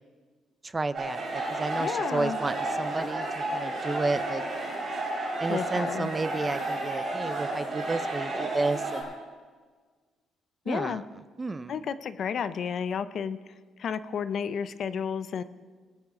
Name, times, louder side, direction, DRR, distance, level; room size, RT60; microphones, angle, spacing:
voice 1, 0.6-4.4 5.4-9.2 10.7-11.0 11.4-11.8, right 3 dB, 15° right, 13 dB, 0.4 m, -32 dB
sound 1, 0.9-9.0, right 2 dB, 35° right, 4.3 m, -32 dB
voice 2, 1.8-2.4 5.5-6.1 10.7-11.0 11.7-13.4 13.8-15.4, left 7 dB, 50° left, 13 dB, 0.5 m, -31 dB
21.0 x 9.3 x 3.7 m, 1.5 s
cardioid pair, 150°, 0 cm